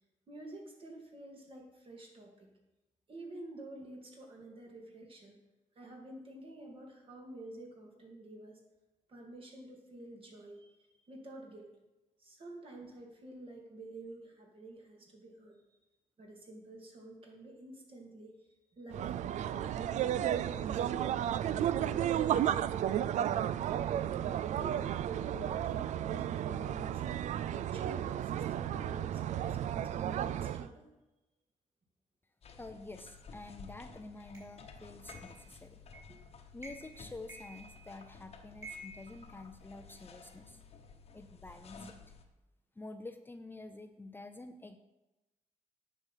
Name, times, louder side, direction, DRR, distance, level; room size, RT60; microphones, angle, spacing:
voice 1, 0.3-2.5 3.1-5.4 5.8-8.6 9.1-11.7 12.2-15.6 16.2-18.3 18.7-20.9 21.4-22.5 22.8-23.5 23.9-27.0 27.5-30.8 36.1-36.2, right 1 dB, 45° right, 0 dB, 2.4 m, -49 dB
sound 1, 18.9-30.7, right 10 dB, 75° right, 0.4 m, -33 dB
sound 2, 32.4-42.3, left 5 dB, 55° left, 1.1 m, -54 dB
voice 2, 32.6-35.8 36.5-40.6 41.1-42.0 42.8-44.8, left 2 dB, 15° left, 7 dB, 0.6 m, -48 dB
sound 3, 34.3-34.5 35.1-35.4 35.9-36.2 36.6-37.0 37.3-38.1 38.6-39.9, right 1 dB, 25° right, 4.2 m, -50 dB
9.7 x 6.4 x 5.7 m, 1.0 s
cardioid pair, 110°, 12 cm